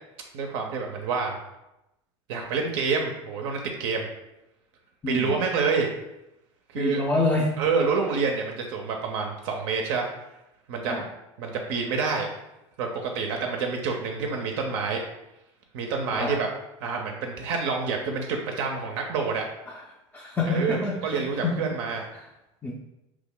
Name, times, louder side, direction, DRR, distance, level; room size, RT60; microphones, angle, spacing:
voice 1, 0.3-1.4 2.3-4.1 5.1-5.9 6.7-7.0 7.6-10.1 10.7-11.0 11.4-12.3 12.8-15.0 15.7-16.5 16.8-19.4 20.5-22.0, right 5 dB, 65° right, 2 dB, 0.5 m, -27 dB
voice 2, 5.0-5.4 6.8-7.6 10.9-11.1 16.1-16.4 19.7-19.8 20.1-21.7 22.1-22.2 22.6-22.7, left 2 dB, 15° left, -3 dB, 0.5 m, -27 dB
2.9 x 2.0 x 3.7 m, 0.91 s
hypercardioid pair, 90°, 16 cm